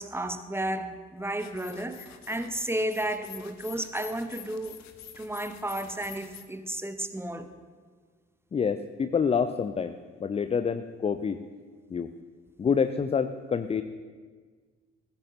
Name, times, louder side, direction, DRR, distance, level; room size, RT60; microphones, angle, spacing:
voice 1, 0.0-4.8 5.2-7.5, right 1 dB, 5° right, 9 dB, 1.0 m, -33 dB
sound 1, 1.4-6.4, left 10 dB, 50° left, 1.0 m, -48 dB
voice 2, 8.5-11.4 11.9-12.1 12.6-13.8, left 6 dB, 20° left, 11 dB, 0.4 m, -27 dB
15.5 x 15.0 x 2.9 m, 1.5 s
figure-of-eight pair, 45°, 35 cm